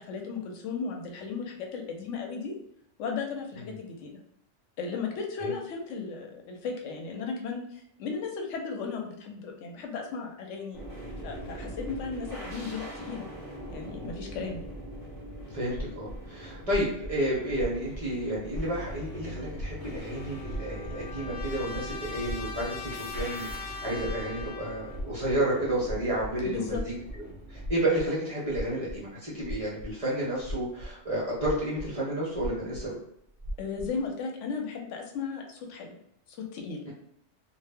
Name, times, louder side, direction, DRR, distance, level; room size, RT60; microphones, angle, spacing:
voice 1, 0.0-2.5 3.0-4.1 4.8-10.8 11.2-13.2 13.7-14.6 26.4-26.8 33.6-36.0 36.3-36.8, left 5 dB, 85° left, 2 dB, 0.9 m, -35 dB
sound 1, 10.7-27.7, right 1 dB, 20° right, 0.9 m, -42 dB
voice 2, 15.5-23.5 23.8-26.8 27.5-33.0 36.8-36.9, right 1 dB, 40° right, -6 dB, 0.5 m, -31 dB
sound 2, 15.7-19.0 19.3-21.0 21.2-21.8 22.2-22.8 23.1-23.7 24.0-24.6 24.9-25.4 25.8-27.2 27.5-28.1 28.5-29.0 29.4-29.9 30.3-31.9 32.3-32.9 33.4-34.1, equal, 60° left, 0.9 m, -38 dB
Trumpet, 20.1-25.0, left 5 dB, 25° left, 0.7 m, -41 dB
2.1 x 2.0 x 3.4 m, 0.74 s
omnidirectional pair, 1.2 m